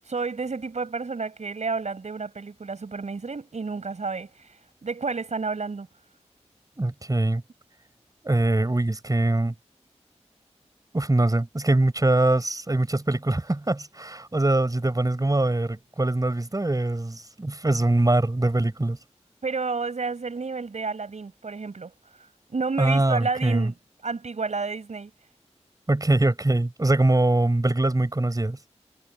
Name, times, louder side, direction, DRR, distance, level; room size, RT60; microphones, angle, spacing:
voice 1, 0.1-5.9 19.4-21.9 22.2-23.7 24.0-25.1, right 4 dB, 80° right, 5.7 m, -30 dB
voice 2, 6.8-7.4 8.2-9.5 10.9-19.0 22.8-23.7 25.9-28.6, right 2 dB, 30° right, 5.7 m, -23 dB
wide cardioid pair, 60°, 12 cm